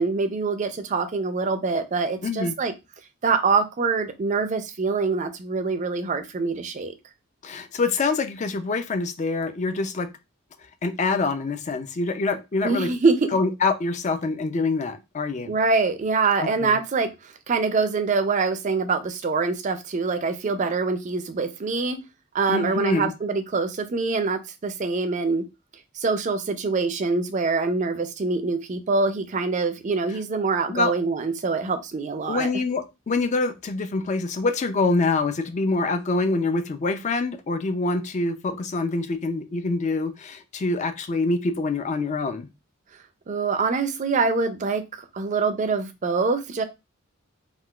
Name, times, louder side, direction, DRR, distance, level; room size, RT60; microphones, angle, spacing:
voice 1, 0.0-2.7 3.2-6.9 12.6-13.2 15.5-17.1 17.5-22.0 22.3-25.4 26.0-32.5 43.3-46.6, right 4 dB, 35° right, 0.4 m, -24 dB
voice 2, 2.2-2.5 7.4-10.1 10.8-12.9 13.3-15.5 16.4-16.8 22.5-23.1 30.1-30.2 30.7-30.9 32.3-42.5, left 3 dB, 35° left, 0.4 m, -25 dB
3.6 x 2.4 x 2.3 m
head